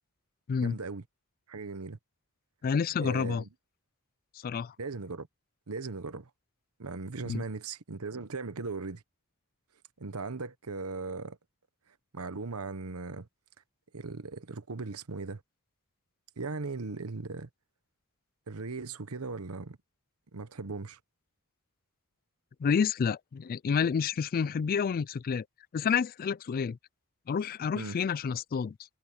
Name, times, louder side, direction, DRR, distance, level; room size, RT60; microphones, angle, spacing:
voice 1, 0.6-1.0 1.5-2.0 3.0-3.5 4.8-5.3 5.7-6.3 6.8-9.0 10.0-11.4 12.1-13.3 13.9-15.4 16.4-17.5 18.5-19.8 20.3-21.0 27.7-28.0, right 3 dB, 80° right, 1.1 m, -38 dB
voice 2, 2.6-3.4 4.4-4.7 7.3-7.4 22.6-25.4 25.7-26.8 27.3-28.8, left 6 dB, 40° left, 0.3 m, -29 dB
head